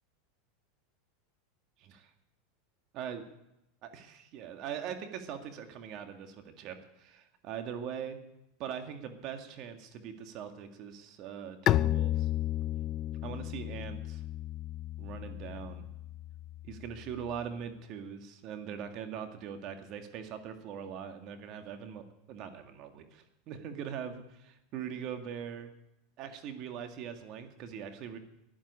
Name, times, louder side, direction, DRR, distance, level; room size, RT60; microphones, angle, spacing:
voice 1, 1.8-2.1 2.9-3.3 3.8-8.2 8.6-12.3 13.2-14.2 15.0-15.9 16.6-25.7 26.2-28.2, right 8 dB, 50° right, 7 dB, 2.0 m, -41 dB
Bowed string instrument, 11.7-17.2, left 13 dB, 40° left, 0.4 m, -33 dB
12.0 x 11.0 x 9.9 m, 0.87 s
supercardioid pair, 115°, 0 cm